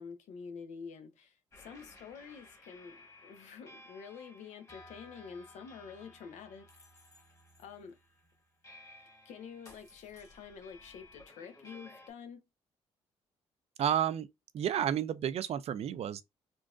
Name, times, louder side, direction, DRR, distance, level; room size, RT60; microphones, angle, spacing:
voice 1, 0.0-6.7 7.6-8.0 9.2-12.4, left 6 dB, 80° left, 0.6 m, -48 dB
sound 1, 1.5-12.1, left 1 dB, 30° left, 1.5 m, -56 dB
voice 2, 13.8-14.3 14.5-16.2, right 10 dB, 60° right, 0.4 m, -31 dB
3.7 x 2.4 x 2.4 m
supercardioid pair, 60°, 12 cm